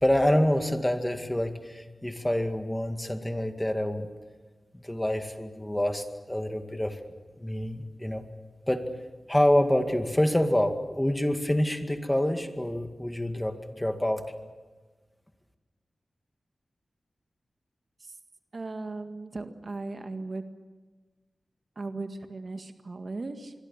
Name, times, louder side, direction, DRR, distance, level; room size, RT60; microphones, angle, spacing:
voice 1, 0.0-4.1 4.7-7.0 7.4-8.3 8.7-8.8 9.3-14.3, left 1 dB, 10° left, 6 dB, 2.2 m, -27 dB
voice 2, 18.5-20.4 21.8-23.5, right 3 dB, 55° right, 7 dB, 1.8 m, -37 dB
26.5 x 22.5 x 7.3 m, 1.3 s
wide cardioid pair, 65°, 0 cm